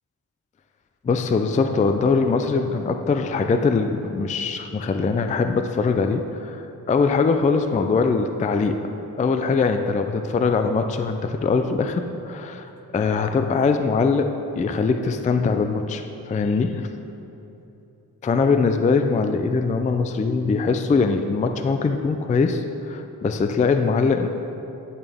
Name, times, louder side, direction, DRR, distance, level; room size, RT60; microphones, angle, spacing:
voice 1, 1.0-8.8 9.2-12.7 12.9-16.9 18.2-24.3, left 4 dB, 20° left, 7 dB, 0.3 m, -22 dB
10.5 x 6.9 x 3.4 m, 2.9 s
wide cardioid pair, 100°, 37 cm